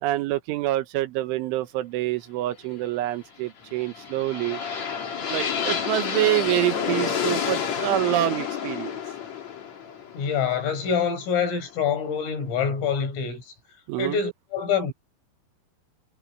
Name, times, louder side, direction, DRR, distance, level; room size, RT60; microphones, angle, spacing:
voice 1, 0.0-4.6 5.3-9.0 13.9-14.2, right 15 dB, 80° right, 3.5 m, -26 dB
sound 1, 3.6-11.6, left 7 dB, 40° left, 3.1 m, -29 dB
voice 2, 10.1-13.5 14.0-14.9, left 6 dB, 85° left, 8.2 m, -26 dB
omnidirectional pair, 5.7 m